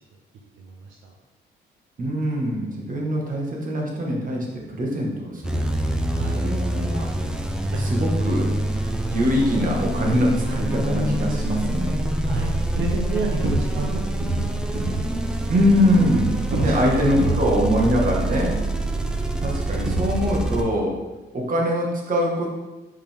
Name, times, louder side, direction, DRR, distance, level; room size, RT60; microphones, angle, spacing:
voice 1, 0.6-1.1 6.1-6.4 7.7-7.8 12.2-14.6 15.0-15.2 16.3-17.0 17.3-17.4 18.0-18.2, right 3 dB, 80° right, 0 dB, 0.8 m, -32 dB
voice 2, 2.0-5.6 6.3-7.0 7.8-8.5 9.1-12.0 15.5-16.3 16.6-18.6 19.4-20.9 21.3-22.5, equal, 45° right, -1 dB, 1.7 m, -23 dB
sound 1, 5.4-20.6, right 1 dB, 5° right, 0.7 m, -25 dB
sound 2, 12.6-13.9 14.2-15.0 16.1-18.0 18.3-20.5, right 3 dB, 60° right, 1.9 m, -29 dB
5.3 x 5.1 x 3.5 m, 1.1 s
cardioid pair, 90°, 20 cm